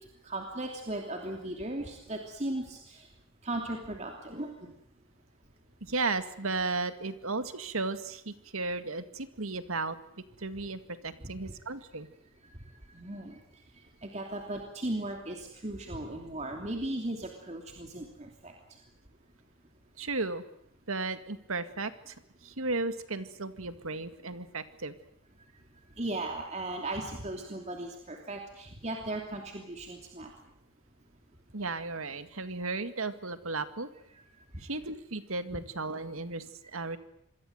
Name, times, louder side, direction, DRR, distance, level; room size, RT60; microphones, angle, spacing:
voice 1, 0.2-3.1 3.4-4.7 11.2-11.3 12.9-13.4 14.0-18.5 26.0-30.3 34.1-34.2, right 1 dB, 30° right, 2 dB, 3.0 m, -37 dB
voice 2, 5.8-10.0 10.4-12.1 20.0-20.4 20.9-22.2 22.4-24.9 31.5-33.9 34.6-37.0, right 3 dB, 80° right, 10 dB, 2.0 m, -34 dB
26.5 x 22.0 x 8.0 m, 0.76 s
head